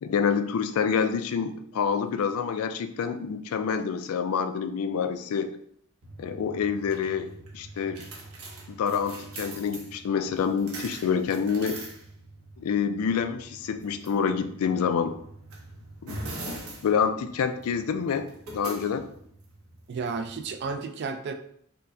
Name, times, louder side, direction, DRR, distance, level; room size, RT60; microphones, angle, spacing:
voice 1, 0.0-5.5 6.2-8.0 8.7-11.8 12.6-15.2 16.0-16.1 16.8-19.1, left 6 dB, 80° left, 9 dB, 0.3 m, -27 dB
sound 1, 6.0-20.7, right 1 dB, 80° right, 0.8 m, -43 dB
voice 2, 19.9-21.3, right 4 dB, 50° right, 8 dB, 0.3 m, -32 dB
4.4 x 2.1 x 2.6 m, 0.67 s
head